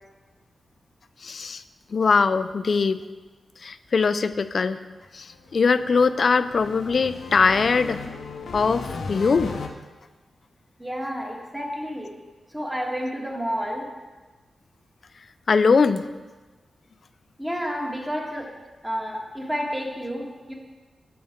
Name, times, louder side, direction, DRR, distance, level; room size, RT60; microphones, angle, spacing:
voice 1, 1.2-1.6 1.9-3.0 3.6-4.8 5.1-5.3 5.5-8.0 8.5-9.5 15.5-16.1, left 5 dB, 55° left, 13 dB, 0.4 m, -21 dB
sound 1, 5.3-9.7, left 4 dB, 80° left, 0.8 m, -36 dB
voice 2, 10.8-12.1 12.5-13.9 17.4-18.5 18.8-20.5, equal, 10° right, -1 dB, 1.6 m, -30 dB
10.5 x 6.8 x 3.7 m, 1.3 s
wide cardioid pair, 105°, 0 cm